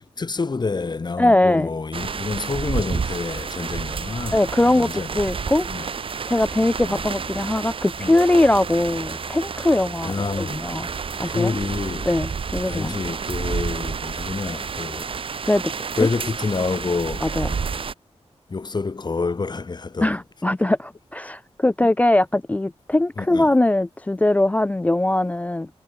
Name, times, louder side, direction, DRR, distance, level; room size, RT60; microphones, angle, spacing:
voice 1, 0.0-5.2 5.7-5.9 6.8-7.0 8.0-8.1 10.0-10.7 11.2-12.1 12.7-15.2 16.0-17.8 18.5-20.2 23.2-23.5, left 4 dB, 40° left, 6.2 m, -28 dB
voice 2, 1.2-1.7 4.3-5.9 6.3-10.9 11.2-11.6 12.1-13.0 15.5-15.7 17.2-17.5 20.0-25.7, left 1 dB, 15° left, 0.3 m, -21 dB
sound 1, 1.9-17.9, right 5 dB, 55° right, 1.0 m, -30 dB
sound 2, 6.4-13.2, right 3 dB, 30° right, 6.5 m, -44 dB
wide cardioid pair, 140°, 11 cm